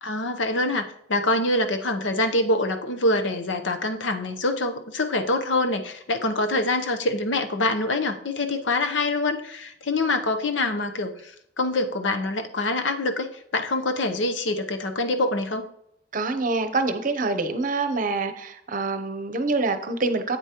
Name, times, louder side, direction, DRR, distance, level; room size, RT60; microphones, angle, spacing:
voice 1, 0.0-15.7, left 2 dB, 90° left, 8 dB, 0.8 m, -25 dB
voice 2, 16.1-20.4, right 3 dB, 45° right, 8 dB, 0.7 m, -26 dB
8.4 x 8.2 x 3.0 m, 0.72 s
head